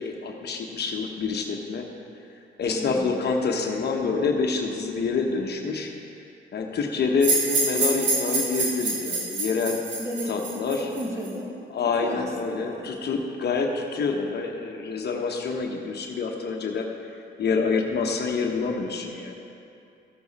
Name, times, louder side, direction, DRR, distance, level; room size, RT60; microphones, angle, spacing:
voice 1, 0.0-1.8 2.6-5.9 6.5-9.8 10.3-10.9 11.7-16.9 17.4-19.4, left 4 dB, 55° left, 2 dB, 1.0 m, -27 dB
voice 2, 2.7-3.2 10.0-11.6 11.8-13.0, equal, 15° right, -2 dB, 2.0 m, -35 dB
sound 1, 7.2-11.3, right 3 dB, 65° right, 2.2 m, -26 dB
14.5 x 7.1 x 4.2 m, 2.6 s
cardioid pair, 90°, 20 cm